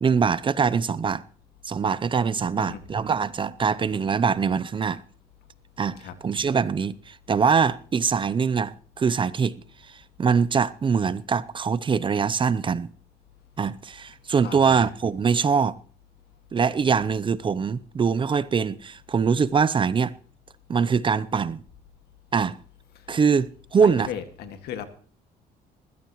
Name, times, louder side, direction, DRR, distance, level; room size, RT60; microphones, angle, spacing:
voice 1, 0.0-1.2 1.6-5.0 5.8-9.5 10.2-12.9 13.6-15.7 16.5-20.1 20.7-21.6 22.3-22.6 23.1-24.1, right 6 dB, 30° right, 0.6 m, -23 dB
voice 2, 14.4-14.9 23.0-23.2 23.8-24.9, left 9 dB, 75° left, 2.0 m, -37 dB
20.5 x 14.5 x 3.1 m
cardioid pair, 110°, 17 cm